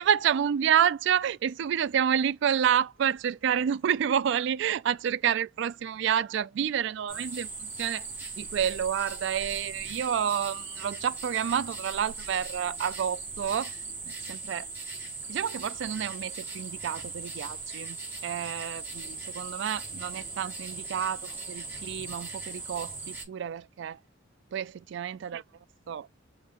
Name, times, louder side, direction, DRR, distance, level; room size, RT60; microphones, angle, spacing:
voice 1, 0.0-8.0 8.4-13.8 14.3-14.7 15.3-18.0 18.2-24.0 24.5-25.4 25.9-26.1, right 8 dB, 60° right, 0.3 m, -29 dB
sound 1, 7.1-23.3, right 3 dB, 10° right, 2.5 m, -39 dB
5.5 x 2.5 x 2.9 m
head